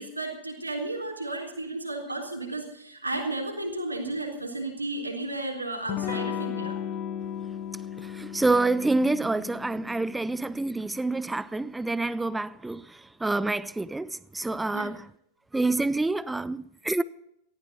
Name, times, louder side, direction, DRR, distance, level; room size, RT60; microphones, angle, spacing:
voice 1, 0.0-6.8 14.7-14.9, right 2 dB, 85° right, 3.8 m, -33 dB
Electric guitar / Strum, 5.9-11.3, left 9 dB, 35° left, 1.1 m, -36 dB
voice 2, 8.0-15.0 15.5-17.0, right 2 dB, 5° right, 0.6 m, -27 dB
19.0 x 15.0 x 4.2 m
figure-of-eight pair, 90°, 0 cm